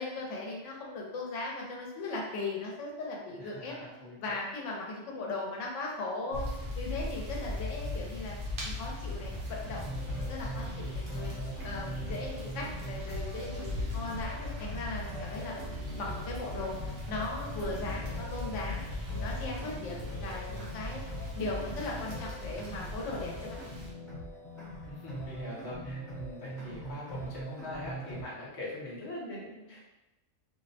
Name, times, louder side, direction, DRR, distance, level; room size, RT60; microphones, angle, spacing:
voice 1, 0.0-3.7 4.2-8.3 8.6-11.3 11.6-15.6 16.0-18.8 19.1-21.0 21.3-23.6, left 2 dB, 80° left, -2 dB, 0.9 m, -38 dB
voice 2, 3.4-4.4 4.7-4.8 24.9-29.9, left 1 dB, 30° left, -6 dB, 0.5 m, -43 dB
sound 1, 6.3-23.9, left 2 dB, 50° right, 0.7 m, -39 dB
sound 2, 9.6-28.2, right 1 dB, 45° left, 0.9 m, -42 dB
2.6 x 2.0 x 2.6 m, 1.0 s
omnidirectional pair, 1.3 m